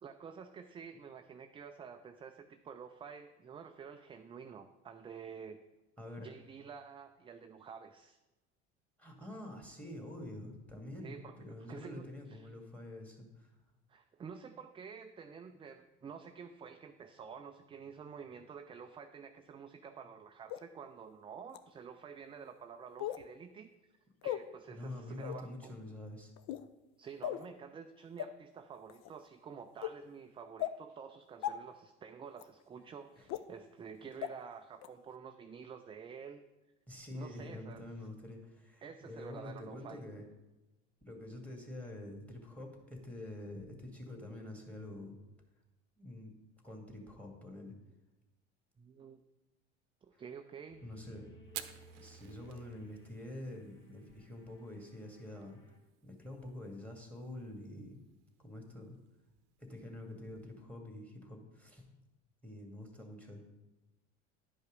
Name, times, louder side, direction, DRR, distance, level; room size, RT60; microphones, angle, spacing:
voice 1, 0.0-5.6 6.2-8.2 11.0-11.3 11.7-12.5 13.9-25.7 27.0-36.4 37.1-37.8 38.8-40.0 48.8-49.2 50.0-50.8, right 6 dB, 15° right, 7 dB, 0.3 m, -50 dB
voice 2, 6.0-6.3 9.0-13.5 24.7-26.3 33.2-33.3 36.9-40.2 41.1-45.2 46.0-46.3 46.6-47.7 50.1-50.2 50.8-51.3 51.6-55.6 56.0-58.0 58.4-59.0 59.6-61.9 62.4-63.4, left 1 dB, 5° left, 3 dB, 2.1 m, -47 dB
sound 1, 20.5-20.6 21.5-21.6 23.0-23.2 24.2-24.4 25.2-25.4 26.4-26.7 27.2-27.5 28.2-28.3 28.9-29.1 29.8-29.9 30.6-30.7 31.4-31.5 32.4-32.5 33.3-33.4 34.2-34.3 34.8-34.9, left 12 dB, 50° left, 0.6 m, -37 dB
sound 2, 50.7-55.8, right 1 dB, 30° left, 1.7 m, -60 dB
Fire, 51.4-60.6, right 13 dB, 60° right, 0.7 m, -55 dB
10.5 x 5.3 x 5.2 m, 1.0 s
hypercardioid pair, 70°, 37 cm